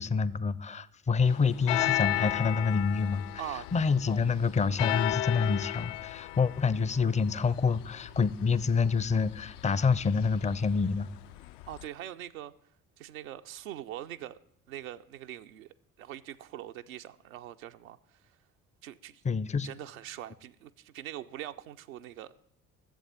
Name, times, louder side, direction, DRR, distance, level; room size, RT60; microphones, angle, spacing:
voice 1, 0.0-3.4 3.7-11.1 19.2-19.7, left 5 dB, 15° left, 0.5 m, -27 dB
sound 1, 1.3-11.9, left 15 dB, 65° left, 0.5 m, -35 dB
voice 2, 11.7-12.5 13.0-14.4 14.7-15.7 16.0-18.2 18.8-19.2 19.6-22.5, right 12 dB, 75° right, 0.6 m, -42 dB
11.5 x 7.7 x 8.7 m
figure-of-eight pair, 45°, 42 cm